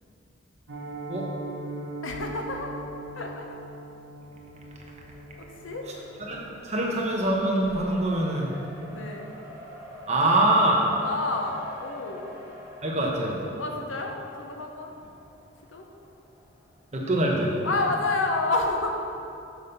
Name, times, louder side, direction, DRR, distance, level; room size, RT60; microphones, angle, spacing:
Piano, 0.7-11.6 11.8-12.1 12.4-12.5 12.9-13.1 13.4-13.5, right 2 dB, 90° right, 1.6 m, -42 dB
voice 1, 2.0-2.7 3.1-3.6 5.4-5.9 8.9-9.4 11.0-12.3 13.6-14.9 15.7-15.9 17.6-18.9, left 3 dB, 75° left, 2 dB, 0.9 m, -29 dB
Race car auto racing, 4.3-17.0, left 1 dB, 15° right, 1.2 m, -46 dB
voice 2, 6.3-8.5 10.1-10.9 12.8-13.4 16.9-17.6, right 1 dB, 35° right, -2 dB, 1.1 m, -24 dB
6.5 x 5.5 x 6.7 m, 2.6 s
head